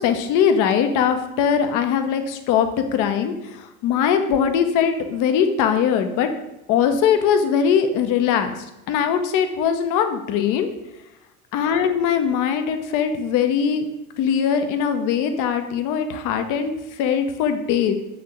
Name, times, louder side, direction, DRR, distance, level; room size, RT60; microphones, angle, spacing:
voice 1, 0.0-6.3 6.7-8.5 8.9-10.7 11.5-13.9 14.2-16.7 17.0-17.9, left 7 dB, 45° left, 7 dB, 1.0 m, -21 dB
8.2 x 3.7 x 6.2 m, 0.94 s
figure-of-eight pair, 70°, 43 cm